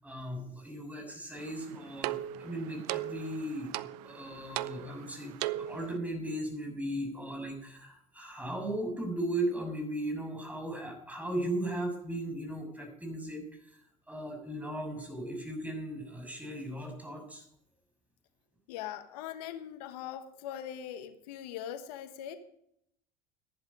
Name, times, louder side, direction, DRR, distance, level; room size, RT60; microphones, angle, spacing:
voice 1, 0.0-3.7 4.0-13.4 13.7-13.8 14.1-17.4, right 1 dB, 5° right, 2 dB, 6.6 m, -37 dB
sound 1, 1.4-6.0, right 14 dB, 80° right, 0.6 m, -38 dB
voice 2, 18.7-22.4, left 10 dB, 80° left, 9 dB, 1.2 m, -41 dB
14.5 x 11.0 x 5.4 m, 0.73 s
hypercardioid pair, 80°, 20 cm